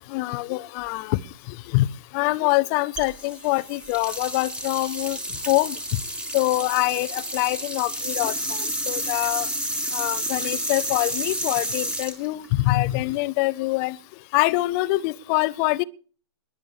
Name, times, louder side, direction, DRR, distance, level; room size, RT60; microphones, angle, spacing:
voice 1, 0.1-1.2 1.5-1.9 2.1-5.2 5.5-6.0 6.3-9.5 9.9-14.0 14.3-15.8, left 20 dB, 35° left, 0.8 m, -24 dB
sound 1, 3.0-13.1, right 1 dB, 5° right, 2.7 m, -30 dB
21.5 x 7.4 x 6.5 m
figure-of-eight pair, 115°, 15 cm